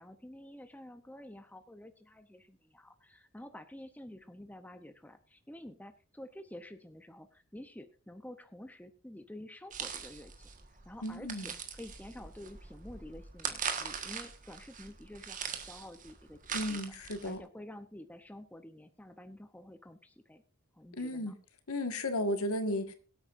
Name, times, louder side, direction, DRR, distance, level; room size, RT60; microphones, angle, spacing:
voice 1, 0.0-10.5 10.8-16.8 17.1-20.4 20.7-21.4, left 1 dB, 5° left, 8 dB, 0.7 m, -50 dB
sound 1, 9.7-17.4, right 6 dB, 35° right, 1.5 m, -41 dB
voice 2, 11.0-11.5 16.5-17.4 21.0-21.3 21.7-22.9, left 1 dB, 80° left, 8 dB, 1.7 m, -34 dB
22.0 x 8.5 x 2.6 m, 0.36 s
head